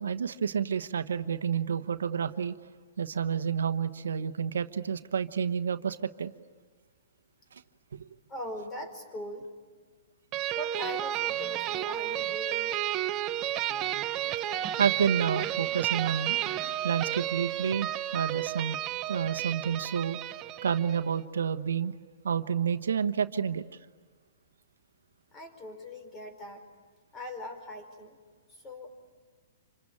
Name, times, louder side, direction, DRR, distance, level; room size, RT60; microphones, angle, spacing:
voice 1, 0.0-2.5 3.0-6.3 14.8-16.4 16.8-18.8 19.1-20.2 20.6-21.9 22.2-23.6, right 7 dB, 80° right, 10 dB, 1.1 m, -29 dB
voice 2, 8.3-9.5 10.5-12.8 25.3-26.6 27.1-28.2 28.5-28.9, left 1 dB, 20° left, 6 dB, 5.0 m, -41 dB
sound 1, 10.3-21.1, right 12 dB, 30° right, 0.9 m, -32 dB
27.0 x 25.5 x 8.8 m, 1.5 s
hypercardioid pair, 135°, 0 cm